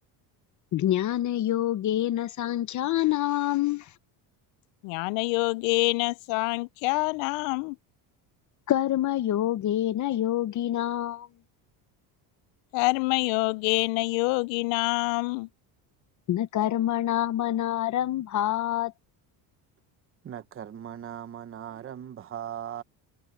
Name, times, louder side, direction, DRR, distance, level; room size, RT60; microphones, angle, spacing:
voice 1, 0.7-3.9 8.7-11.3 16.3-18.9, left 13 dB, 40° left, 0.8 m, -26 dB
voice 2, 4.8-7.8 12.7-15.5, left 27 dB, 80° left, 0.6 m, -26 dB
voice 3, 20.2-22.8, right 10 dB, 30° right, 1.2 m, -38 dB
cardioid pair, 145°, 44 cm